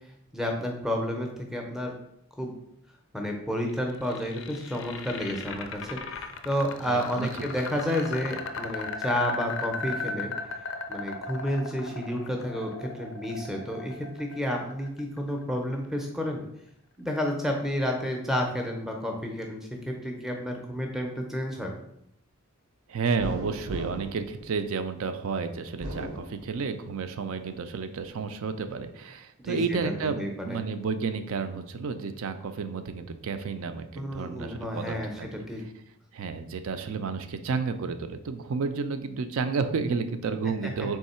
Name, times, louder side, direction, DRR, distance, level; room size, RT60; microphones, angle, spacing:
voice 1, 0.3-1.9 2.4-2.5 3.1-10.3 10.9-16.4 17.0-21.7 29.4-30.6 34.0-35.6 40.6-40.9, equal, ahead, 1 dB, 0.5 m, -31 dB
sound 1, 3.7-15.7, left 4 dB, 55° left, 0.4 m, -37 dB
voice 2, 6.9-7.3 22.9-35.4 36.1-41.0, right 5 dB, 65° right, 9 dB, 0.4 m, -31 dB
sound 2, 23.2-25.1 25.6-27.0 27.4-28.3, right 1 dB, 90° right, 0.8 m, -39 dB
3.6 x 3.1 x 4.2 m, 0.78 s
head